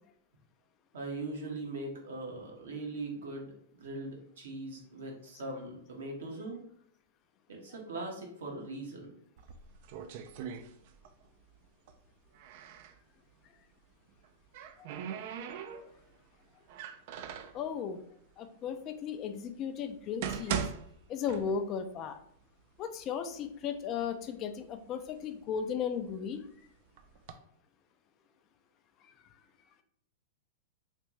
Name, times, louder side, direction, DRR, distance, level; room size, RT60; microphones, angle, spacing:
voice 1, 0.9-6.6 7.5-9.1, right 2 dB, 80° right, -1 dB, 1.2 m, -40 dB
sound 1, 9.4-11.3 11.5-13.0 14.1-16.1 16.7-17.6 18.4-18.5 19.2-19.3 19.9-21.9 22.2-22.3 23.0-23.1 23.5-24.1 24.7-26.3 27.0-27.3, right 8 dB, 55° right, 0.4 m, -40 dB
voice 2, 17.5-18.0 18.4-20.6 21.1-22.2 22.8-26.4, left 7 dB, 35° left, 8 dB, 0.4 m, -35 dB
3.3 x 2.6 x 3.0 m, 0.69 s
hypercardioid pair, 125°, 0 cm